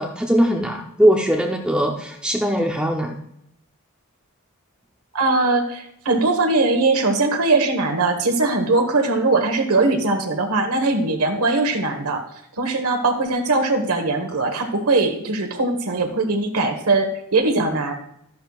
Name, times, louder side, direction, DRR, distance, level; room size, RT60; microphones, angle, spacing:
voice 1, 0.0-3.2, equal, 5° right, 1 dB, 0.7 m, -20 dB
voice 2, 5.1-12.2 12.6-17.9, right 3 dB, 85° right, 6 dB, 1.4 m, -20 dB
13.5 x 10.0 x 2.4 m, 0.74 s
head